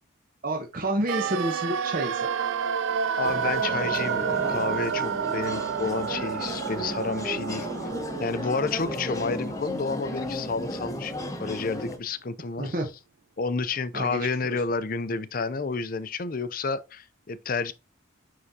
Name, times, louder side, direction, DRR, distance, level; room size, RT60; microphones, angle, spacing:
voice 1, 0.4-2.3 12.6-12.9 13.9-14.6, right 1 dB, 45° right, 0.9 m, -29 dB
sound 1, 1.1-11.0 11.3-11.4, right 7 dB, 70° right, 0.4 m, -30 dB
voice 2, 3.2-7.7 8.2-12.7 13.4-17.7, left 4 dB, 45° left, 0.5 m, -30 dB
sound 2, 3.2-12.0, left 1 dB, 15° left, 0.8 m, -35 dB
9.5 x 3.7 x 2.7 m
head